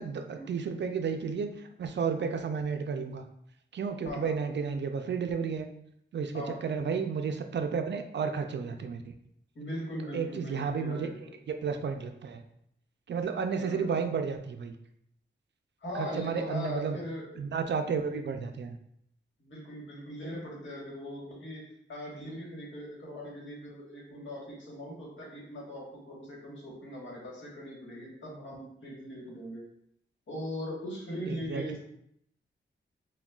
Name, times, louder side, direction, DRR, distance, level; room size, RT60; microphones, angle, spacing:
voice 1, 0.0-3.3 3.7-5.7 6.1-9.1 10.1-11.1 11.5-12.4 13.1-14.7 15.9-17.0 17.4-18.8 31.3-31.8, right 6 dB, 65° right, 6 dB, 0.4 m, -32 dB
voice 2, 4.0-4.5 6.3-6.6 9.5-11.3 13.5-14.0 15.8-17.2 19.4-29.6 30.3-31.8, equal, 70° left, -3 dB, 1.4 m, -40 dB
5.9 x 2.2 x 2.3 m, 0.71 s
wide cardioid pair, 95°, 20 cm